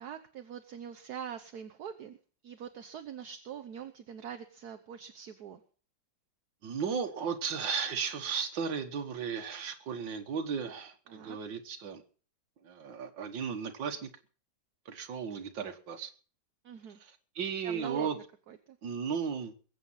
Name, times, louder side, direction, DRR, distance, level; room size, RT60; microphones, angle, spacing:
voice 1, 0.0-2.2 2.4-5.6 11.1-11.4 16.6-17.0 17.6-18.8, right 8 dB, 60° right, 8 dB, 1.4 m, -43 dB
voice 2, 6.6-12.0 12.6-14.1 14.9-16.1 17.4-18.2 18.8-19.5, right 6 dB, 80° right, 6 dB, 2.2 m, -35 dB
21.5 x 8.4 x 5.6 m, 0.41 s
omnidirectional pair, 2.0 m